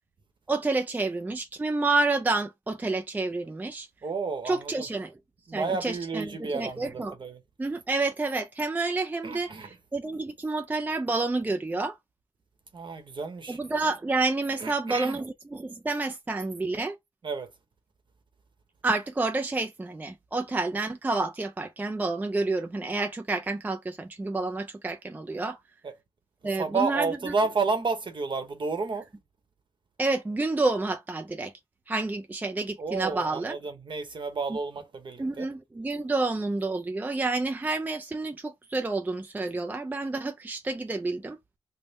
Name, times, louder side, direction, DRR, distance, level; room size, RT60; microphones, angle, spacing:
voice 1, 0.5-3.9 4.4-5.1 5.5-7.1 7.6-12.0 13.5-17.0 18.8-25.6 26.4-27.3 30.0-31.5 31.9-33.6 34.5-34.6 35.2-41.4, right 3 dB, 15° right, 0.3 m, -29 dB
voice 2, 4.0-4.9 5.5-7.4 9.2-9.8 12.7-13.6 14.6-15.2 17.2-17.5 25.8-25.9 26.5-29.1 32.8-35.5, right 4 dB, 50° right, 0.9 m, -31 dB
3.5 x 2.1 x 4.0 m
wide cardioid pair, 115°, 10 cm